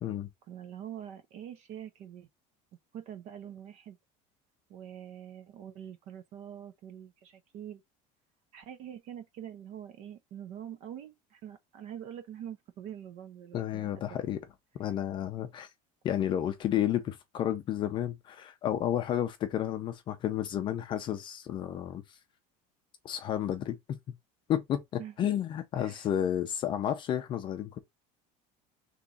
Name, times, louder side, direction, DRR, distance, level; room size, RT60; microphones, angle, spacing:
voice 1, 0.5-2.3 2.9-4.0 4.7-7.8 8.5-14.2 25.0-25.1 25.8-26.1, right 10 dB, 45° right, 0.5 m, -45 dB
voice 2, 13.5-14.4 14.8-15.7 16.0-22.2 23.0-24.0 24.5-27.8, left 10 dB, 30° left, 0.5 m, -31 dB
3.6 x 3.0 x 3.9 m
cardioid pair, 175°, 16 cm